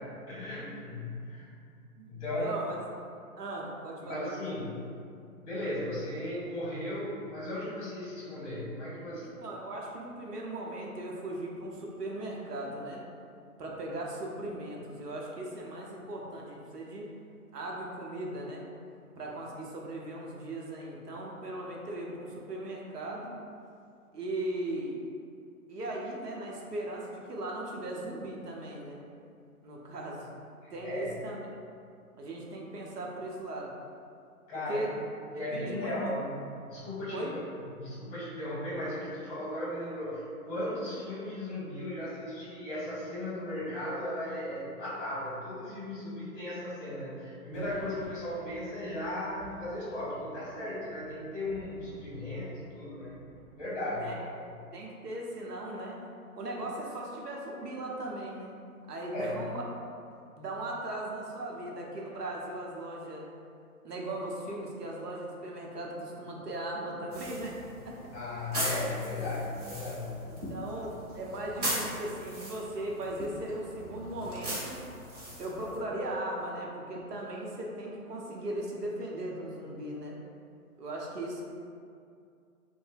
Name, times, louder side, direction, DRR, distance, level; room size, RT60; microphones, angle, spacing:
voice 1, 0.3-1.5 2.1-2.5 4.0-4.8 5.1-9.3 30.6-31.1 34.5-35.0 35.3-53.2 53.5-54.5 59.1-59.4 68.1-70.2, left 1 dB, 25° left, -7 dB, 0.9 m, -36 dB
voice 2, 2.3-2.8 3.4-4.4 9.4-13.0 13.6-17.1 17.5-18.6 19.2-23.4 24.1-25.0 25.7-29.0 29.6-30.3 30.7-31.4 32.1-33.7 34.7-34.9 35.3-35.9 37.1-37.4 54.0-54.2 54.7-56.0 56.4-58.5 58.9-59.6 60.4-63.3 63.8-67.6 67.8-68.1 70.2-74.8 75.4-80.2 80.8-81.4, right 1 dB, 85° right, -2 dB, 0.7 m, -38 dB
sound 1, 47.5-54.3, right 1 dB, ahead, 1.3 m, -51 dB
sound 2, 67.1-75.8, equal, 25° right, 0.5 m, -39 dB
2.7 x 2.1 x 3.3 m, 2.4 s
figure-of-eight pair, 135°, 46 cm